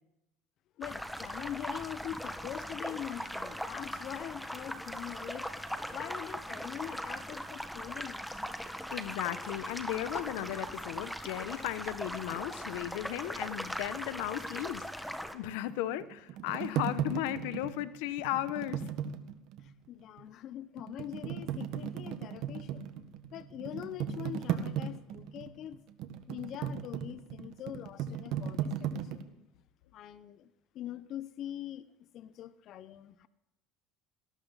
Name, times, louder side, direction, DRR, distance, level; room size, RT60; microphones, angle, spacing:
voice 1, 0.8-5.6 5.9-8.2 19.6-22.9 23.3-25.8 26.3-29.2 29.9-30.5 30.7-31.9 32.1-33.3, left 11 dB, 55° left, 15 dB, 0.8 m, -43 dB
sound 1, 0.8-15.3, equal, ahead, 1.5 m, -40 dB
sound 2, 6.8-7.0 7.3-7.5 8.0-8.3 8.7-8.8 9.3-9.6 10.0-10.2 10.6-11.4 11.9-12.3 12.6-12.7 13.3-13.4 14.0-14.1 14.7-14.8 15.3-15.4, right 5 dB, 30° right, 1.8 m, -57 dB
voice 2, 8.9-18.8, left 14 dB, 85° left, 15 dB, 0.9 m, -36 dB
sound 3, 15.7-19.7 20.2-20.3 20.8-29.2, right 9 dB, 65° right, 1.5 m, -37 dB
19.0 x 18.0 x 4.1 m, 0.91 s
supercardioid pair, 115°, 0 cm